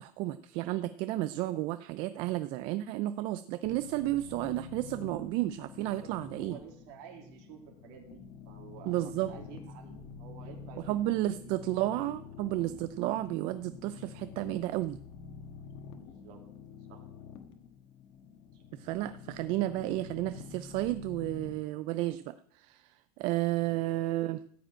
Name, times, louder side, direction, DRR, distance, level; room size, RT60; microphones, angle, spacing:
voice 1, 0.0-6.6 8.9-9.3 10.9-15.0 18.8-24.4, right 15 dB, 50° right, 13 dB, 0.4 m, -32 dB
sound 1, 3.6-21.5, left 6 dB, 45° left, 1.3 m, -48 dB
voice 2, 6.4-10.8 11.1-11.4 16.0-16.4 16.9-17.0 18.5-18.6, right 8 dB, 65° right, 2 dB, 2.9 m, -51 dB
14.0 x 5.1 x 9.1 m, 0.65 s
cardioid pair, 170°, 11 cm